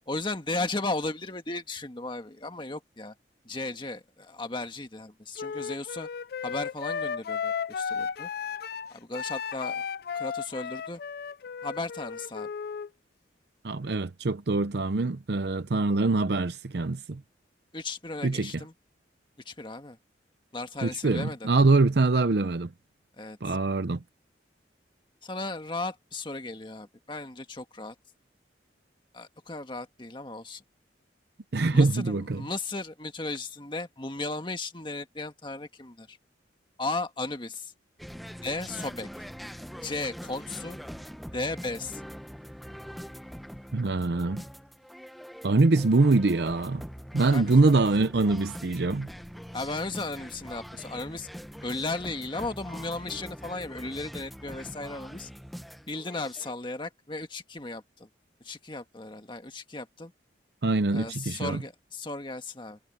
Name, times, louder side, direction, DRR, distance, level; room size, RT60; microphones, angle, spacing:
voice 1, 0.1-3.1 3.4-6.1 6.4-8.3 8.9-9.9 10.1-11.0 11.6-12.5 17.7-18.7 19.4-20.0 20.5-21.5 23.2-23.6 25.2-27.9 29.1-30.6 31.7-36.2 36.8-37.7 38.4-39.1 39.8-40.8 41.3-42.0 47.3-47.5 49.5-51.3 51.6-55.3 55.9-58.1 58.4-60.1 60.9-62.8, left 2 dB, 25° left, 1.6 m, -35 dB
Wind instrument woodwind instrument, 5.4-12.9, left 6 dB, 55° left, 0.3 m, -34 dB
voice 2, 13.6-17.2 18.2-18.6 20.8-22.7 23.4-24.0 31.5-32.4 43.7-44.4 45.4-46.8 47.1-49.1 60.6-61.6, right 3 dB, 65° right, 0.6 m, -24 dB
sound 1, 38.0-56.5, equal, ahead, 0.7 m, -43 dB
head